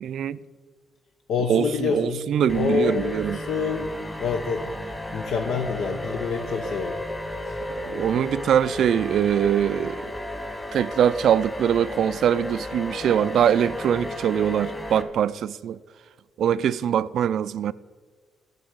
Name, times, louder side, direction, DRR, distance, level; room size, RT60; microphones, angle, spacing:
voice 1, 0.0-0.4 1.5-3.4 7.8-10.0 10.7-15.8 16.4-17.7, right 9 dB, 70° right, 0.3 m, -23 dB
voice 2, 1.3-2.3 2.5-3.9 4.2-4.6 5.1-7.0 7.4-7.6, left 5 dB, 75° left, 0.9 m, -27 dB
sound 1, 2.5-15.0, left 1 dB, 10° left, 1.6 m, -34 dB
12.0 x 5.4 x 7.9 m
cardioid pair, 90°, 0 cm